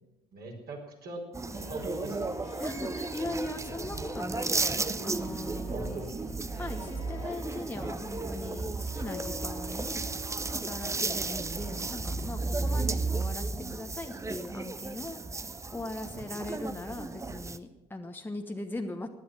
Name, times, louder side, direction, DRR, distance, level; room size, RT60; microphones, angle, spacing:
voice 1, 0.3-1.2 1.7-2.2 5.6-6.2 12.6-12.9, right 2 dB, 50° right, 0 dB, 4.5 m, -40 dB
Harp, 1.3-12.3 12.6-12.7, left 1 dB, 90° left, 3.0 m, -46 dB
sound 1, 1.3-17.6, right 3 dB, 15° right, 0.8 m, -34 dB
voice 2, 2.6-6.1 6.6-10.1 10.7-15.2 15.7-19.1, left 2 dB, 10° left, 4 dB, 1.2 m, -40 dB
16.0 x 11.0 x 7.6 m, 1.0 s
figure-of-eight pair, 55°, 21 cm